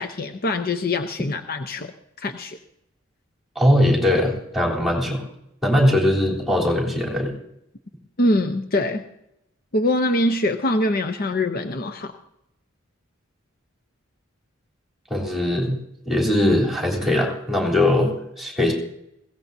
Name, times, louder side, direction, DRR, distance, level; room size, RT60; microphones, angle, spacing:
voice 1, 0.0-1.9 2.2-2.6 8.2-9.0 9.7-12.1, left 1 dB, 45° left, 7 dB, 0.8 m, -23 dB
voice 2, 3.6-5.2 5.6-7.3 15.1-15.8 16.1-18.1 18.4-18.7, left 1 dB, ahead, -1 dB, 3.6 m, -20 dB
21.5 x 17.0 x 2.7 m, 0.81 s
head